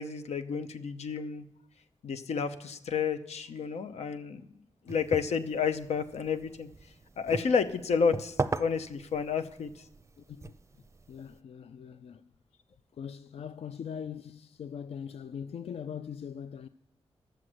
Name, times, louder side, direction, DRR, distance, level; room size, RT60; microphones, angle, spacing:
voice 1, 0.0-1.5 2.0-4.4 4.9-6.7 7.2-9.8, left 6 dB, 90° left, 0.8 m, -30 dB
sound 1, 4.9-11.4, right 3 dB, 25° right, 0.5 m, -39 dB
voice 2, 10.2-10.5 11.1-12.2 13.0-16.7, left 7 dB, 65° left, 0.4 m, -41 dB
11.5 x 7.6 x 7.9 m
wide cardioid pair, 95°, 11 cm